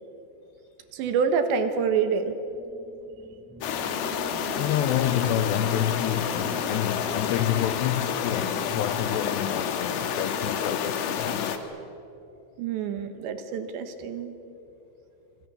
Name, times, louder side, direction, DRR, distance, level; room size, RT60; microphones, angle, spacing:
voice 1, 0.9-2.4 12.6-14.4, right 6 dB, 70° right, 3.3 m, -27 dB
sound 1, 2.5-10.2, right 3 dB, 15° right, 0.4 m, -46 dB
sound 2, 3.6-11.6, left 7 dB, 65° left, 2.9 m, -29 dB
voice 2, 4.6-11.7, left 11 dB, 85° left, 2.4 m, -28 dB
26.0 x 26.0 x 6.9 m
omnidirectional pair, 5.7 m